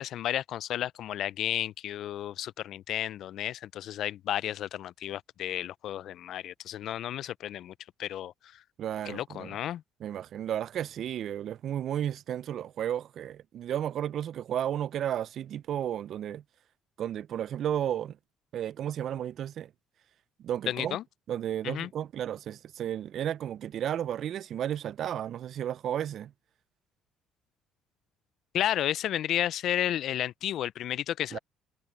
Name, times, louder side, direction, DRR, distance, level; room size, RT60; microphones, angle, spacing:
voice 1, 0.0-7.7 8.0-8.3 9.1-9.8 20.7-21.0 21.6-21.9 28.5-31.4, left 12 dB, 70° left, 0.4 m, -32 dB
voice 2, 8.8-9.6 10.0-16.4 17.0-18.2 18.5-19.7 20.4-21.0 21.3-26.3 31.3-31.4, right 10 dB, 65° right, 0.4 m, -33 dB
supercardioid pair, 70°, 0 cm